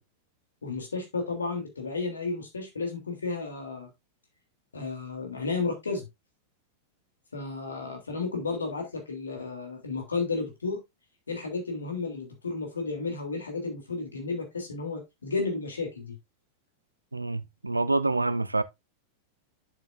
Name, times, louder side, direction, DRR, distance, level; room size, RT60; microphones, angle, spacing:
voice 1, 0.6-3.9 4.7-6.1 7.3-10.8 11.3-16.2, left 4 dB, 75° left, 3.2 m, -32 dB
voice 2, 17.1-18.6, right 2 dB, 80° right, 0.6 m, -27 dB
8.7 x 7.7 x 2.6 m
figure-of-eight pair, 90°, 0 cm